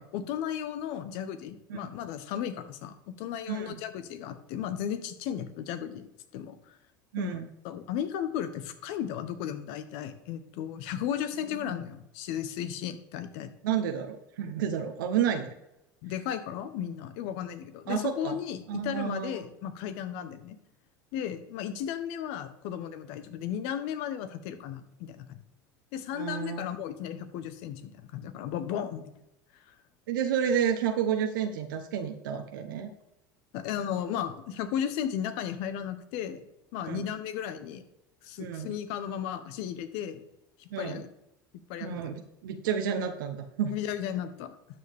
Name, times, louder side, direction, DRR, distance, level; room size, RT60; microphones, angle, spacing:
voice 1, 0.0-6.1 6.3-6.6 7.2-7.4 7.6-13.5 16.0-20.6 21.1-25.4 25.9-29.1 33.5-36.4 36.7-37.8 38.2-40.2 40.6-41.1 41.7-42.0 43.7-44.5, left 9 dB, 65° left, 11 dB, 1.0 m, -35 dB
voice 2, 7.1-7.5 11.6-11.8 13.6-15.5 17.9-18.4 18.7-19.4 20.2-20.3 26.1-26.7 30.1-32.9 36.9-37.1 38.4-38.8 40.7-41.0 41.8-43.7, right 8 dB, 75° right, 5 dB, 1.0 m, -30 dB
12.0 x 7.0 x 3.6 m, 0.87 s
hypercardioid pair, 80°, 11 cm